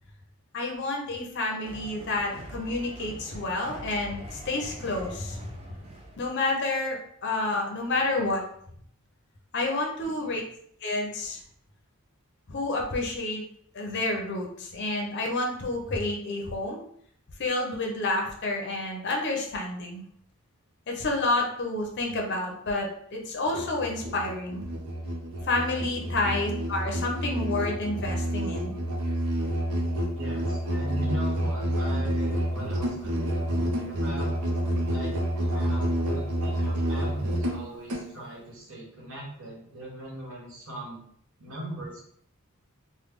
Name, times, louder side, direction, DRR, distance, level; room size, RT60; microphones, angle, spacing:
voice 1, 0.5-5.4 6.2-8.4 9.5-10.4 10.8-11.4 12.5-13.4 13.7-16.8 17.4-20.0 20.9-24.6 25.4-28.8, left 2 dB, 50° left, 0 dB, 0.6 m, -29 dB
sound 1, 1.6-6.5, right 1 dB, 25° right, 0.4 m, -44 dB
voice 2, 10.0-10.3 30.1-34.3 34.9-41.0 41.4-42.0, right 1 dB, 65° right, -4 dB, 1.3 m, -40 dB
Musical instrument, 23.5-38.1, right 1 dB, 80° right, 0.7 m, -29 dB
3.2 x 2.2 x 3.5 m, 0.65 s
head